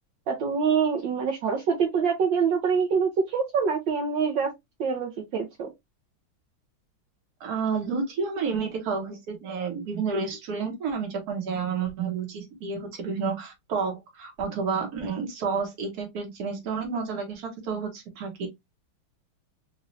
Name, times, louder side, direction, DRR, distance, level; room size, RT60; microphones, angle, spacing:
voice 1, 0.3-4.5 4.8-5.7, right 6 dB, 70° right, 1.5 m, -25 dB
voice 2, 7.4-18.5, right 5 dB, 55° right, 1.6 m, -30 dB
4.0 x 2.6 x 3.1 m
omnidirectional pair, 2.2 m